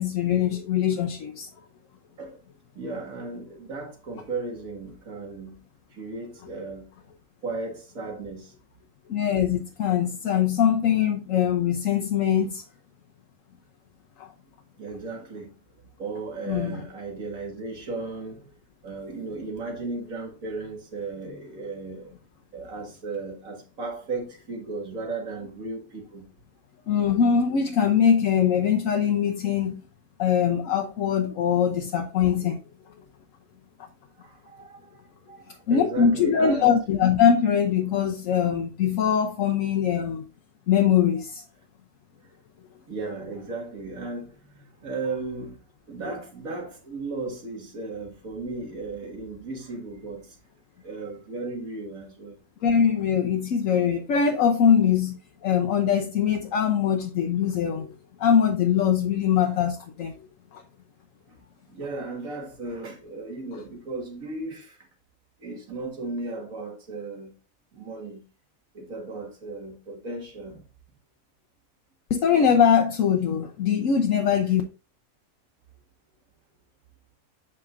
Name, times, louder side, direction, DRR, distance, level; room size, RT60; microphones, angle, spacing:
voice 1, 0.0-1.5 9.1-12.6 14.2-14.3 16.4-16.8 26.9-29.7 30.2-32.6 32.9-33.0 35.7-40.2 40.7-41.4 52.6-55.2 55.4-57.9 58.2-60.1 60.5-60.6 72.1-74.6, left 8 dB, 75° left, 1.1 m, -22 dB
voice 2, 2.8-5.6 5.9-6.9 7.4-8.5 14.8-15.5 16.0-18.5 18.8-22.1 22.5-26.3 34.2-35.0 35.3-36.7 42.2-42.3 42.9-45.6 45.9-50.4 50.8-52.4 61.3-64.9 65.4-67.3 67.7-68.2 68.7-70.6, right 3 dB, 90° right, 2.2 m, -35 dB
7.7 x 6.0 x 2.5 m
omnidirectional pair, 1.4 m